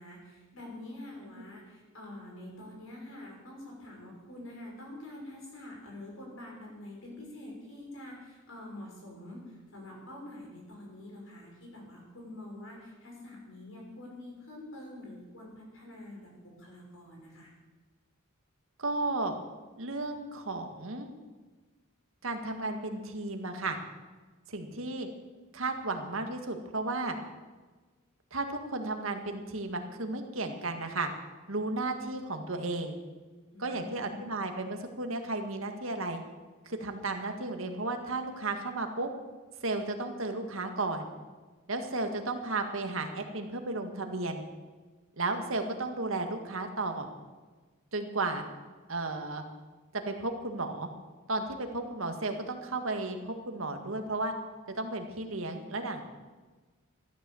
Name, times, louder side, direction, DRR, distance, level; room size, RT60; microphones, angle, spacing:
voice 1, 0.0-17.5 33.5-34.3, left 1 dB, 70° left, -1 dB, 6.0 m, -46 dB
voice 2, 18.8-19.4 19.8-21.1 22.2-23.8 24.5-25.1 25.5-27.2 28.3-31.1 31.5-33.0 33.6-36.2 36.7-39.1 39.6-41.1 41.7-44.4 45.2-47.1 47.9-48.4 48.9-49.4 49.9-50.9 51.3-54.3 54.7-56.1, right 2 dB, 75° right, 5 dB, 1.9 m, -34 dB
14.5 x 12.5 x 7.1 m, 1.3 s
head